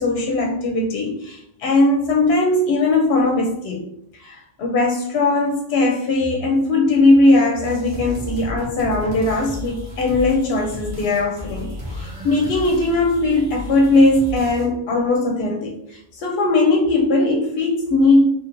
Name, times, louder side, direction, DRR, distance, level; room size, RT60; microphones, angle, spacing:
voice 1, 0.0-3.9 4.2-18.2, left 2 dB, 75° left, 0 dB, 0.8 m, -19 dB
sound 1, 7.6-14.7, left 2 dB, 50° right, 1.0 m, -33 dB
2.9 x 2.4 x 2.9 m, 0.74 s
omnidirectional pair, 1.1 m